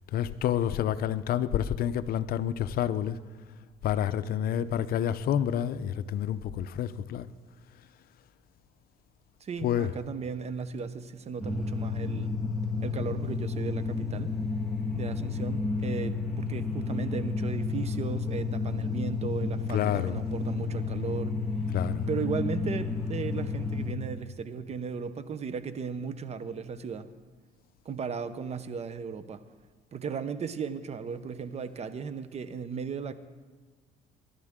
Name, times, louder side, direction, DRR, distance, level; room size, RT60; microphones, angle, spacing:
voice 1, 0.1-3.2 3.8-7.3 9.6-9.9 19.7-20.2 21.7-22.1, left 10 dB, 60° left, 0.6 m, -28 dB
voice 2, 9.4-12.4 12.8-14.3 14.9-21.4 22.1-27.1 27.8-29.4 29.9-33.1, right 5 dB, 40° right, 0.8 m, -36 dB
sound 1, 11.4-23.9, left 4 dB, 5° right, 1.5 m, -31 dB
22.5 x 11.0 x 3.7 m
cardioid pair, 110°, 17 cm